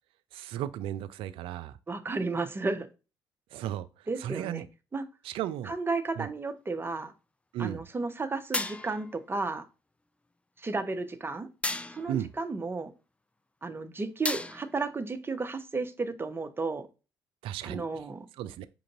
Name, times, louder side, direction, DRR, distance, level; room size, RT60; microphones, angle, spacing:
voice 1, 0.3-1.8 3.5-4.7 5.2-5.7 6.2-6.3 7.5-7.8 12.1-12.3 17.4-18.0 18.4-18.7, right 11 dB, 70° right, 0.3 m, -35 dB
voice 2, 1.9-2.9 4.1-4.6 4.9-5.0 5.7-7.1 7.6-9.6 10.6-11.5 11.9-12.9 13.6-16.9 17.6-18.3, right 3 dB, 25° right, 0.7 m, -33 dB
sound 1, 8.5-9.1 11.6-12.2 14.3-14.9, left 2 dB, 15° left, 0.4 m, -33 dB
5.3 x 2.5 x 2.9 m
hypercardioid pair, 50°, 10 cm